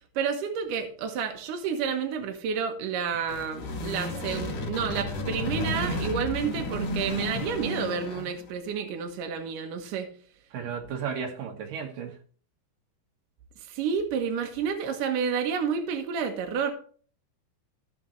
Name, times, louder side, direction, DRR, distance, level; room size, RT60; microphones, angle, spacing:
voice 1, 0.2-10.1 13.7-16.7, right 6 dB, 80° right, 4 dB, 1.9 m, -30 dB
sound 1, 3.1-8.4, left 2 dB, 50° left, 2.2 m, -32 dB
voice 2, 10.5-12.1, right 6 dB, 60° right, 2 dB, 2.6 m, -34 dB
15.0 x 6.1 x 3.1 m, 0.43 s
omnidirectional pair, 5.5 m